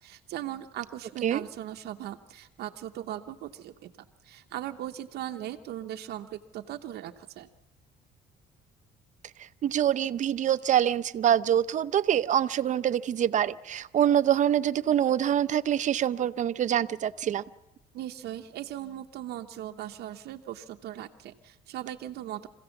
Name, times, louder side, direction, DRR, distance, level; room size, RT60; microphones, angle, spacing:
voice 1, 0.0-7.5 17.9-22.5, right 12 dB, 75° right, 5 dB, 0.9 m, -39 dB
voice 2, 9.6-17.4, right 10 dB, 45° right, 13 dB, 0.7 m, -25 dB
26.5 x 16.0 x 7.1 m, 1.1 s
cardioid pair, 110°, 17 cm